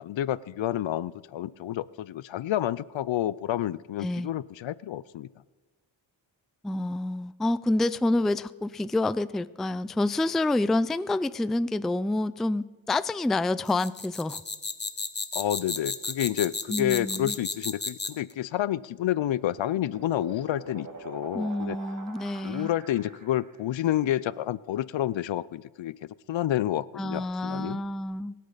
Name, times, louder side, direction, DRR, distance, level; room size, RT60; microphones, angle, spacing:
voice 1, 0.0-5.3 15.3-21.8 22.4-27.8, left 12 dB, 70° left, 20 dB, 0.6 m, -29 dB
voice 2, 6.6-14.4 16.7-17.3 21.3-22.7 27.0-28.3, left 2 dB, ahead, 16 dB, 0.3 m, -28 dB
sound 1, 13.7-18.3, left 4 dB, 20° left, 0.9 m, -33 dB
sound 2, 18.9-23.7, right 3 dB, 40° right, 2.3 m, -45 dB
24.5 x 8.5 x 4.0 m, 1.2 s
cardioid pair, 55°, 49 cm